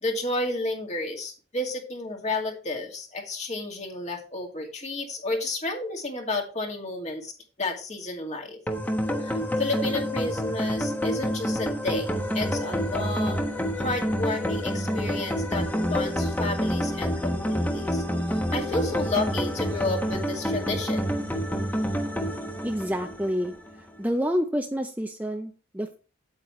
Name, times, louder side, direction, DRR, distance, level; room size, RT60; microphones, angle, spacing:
voice 1, 0.0-7.3 7.6-8.6 9.2-13.5 13.8-18.0 18.3-21.0, left 2 dB, 35° left, 1 dB, 2.2 m, -31 dB
sound 1, 8.7-23.7, equal, 10° left, 1.2 m, -28 dB
voice 2, 22.6-23.5 24.0-26.0, equal, 10° right, 5 dB, 0.6 m, -28 dB
9.0 x 8.7 x 3.2 m, 0.35 s
head